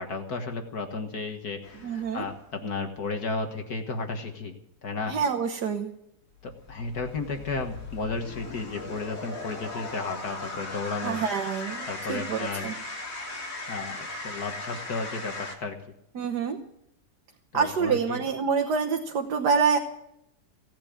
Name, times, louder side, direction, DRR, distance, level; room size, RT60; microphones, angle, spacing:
voice 1, 0.0-4.5 4.8-5.2 6.4-11.2 11.9-12.7 13.7-15.8 17.5-18.2, left 3 dB, 65° left, 4 dB, 2.0 m, -33 dB
sound 1, 1.6-2.4 6.3-15.6, left 2 dB, 50° left, 3.3 m, -38 dB
voice 2, 1.8-2.2 5.1-5.9 11.0-12.7 16.2-16.6 17.5-19.8, right 6 dB, 75° right, 4 dB, 1.7 m, -26 dB
17.5 x 8.8 x 8.6 m, 0.78 s
omnidirectional pair, 1.8 m